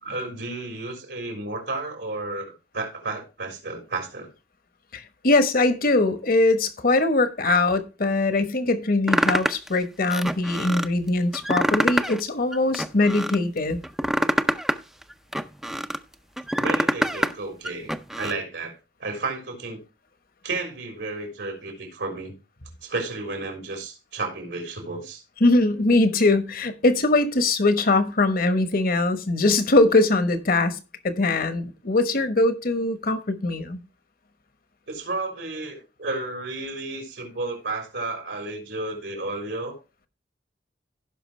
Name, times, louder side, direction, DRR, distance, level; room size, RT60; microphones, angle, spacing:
voice 1, 0.0-4.3 16.6-19.8 20.4-22.3 22.8-25.2 34.9-39.8, right 3 dB, 85° right, 3.7 m, -32 dB
voice 2, 4.9-13.8 25.4-30.8 31.0-33.8, left 2 dB, 55° left, 1.1 m, -21 dB
sound 1, 9.1-9.7 10.1-10.9 11.3-12.2 12.5-13.4 13.8-16.0 16.4-17.3 17.6-18.3, equal, 5° right, 0.5 m, -25 dB
16.0 x 5.8 x 3.2 m
head